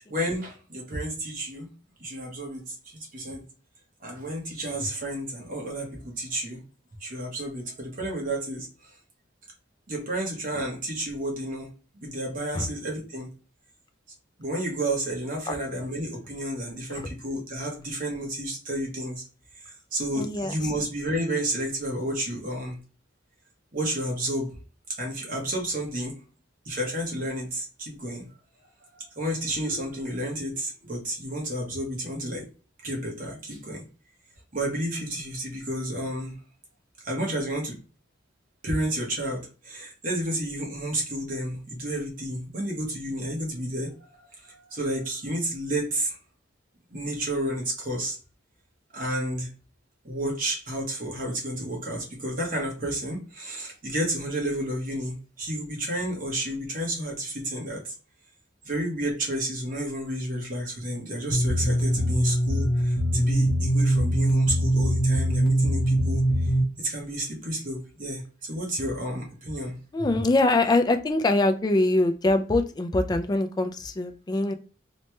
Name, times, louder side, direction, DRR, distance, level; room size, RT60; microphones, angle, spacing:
voice 1, 0.1-1.7 2.0-3.4 4.0-6.6 7.0-8.9 9.9-11.7 11.9-13.3 14.4-19.2 19.6-22.8 23.7-24.6 25.0-26.2 26.6-28.3 28.9-32.5 32.8-33.8 34.5-36.4 37.0-37.8 38.6-46.2 46.9-48.2 48.9-49.5 50.0-57.9 58.6-66.5 66.8-69.8, right 1 dB, 45° right, -1 dB, 1.1 m, -31 dB
voice 2, 20.1-20.7 69.9-74.5, left 2 dB, 20° left, 8 dB, 0.3 m, -24 dB
sound 1, 61.3-66.6, right 1 dB, 55° left, 0.7 m, -22 dB
3.1 x 2.2 x 2.9 m, 0.36 s
head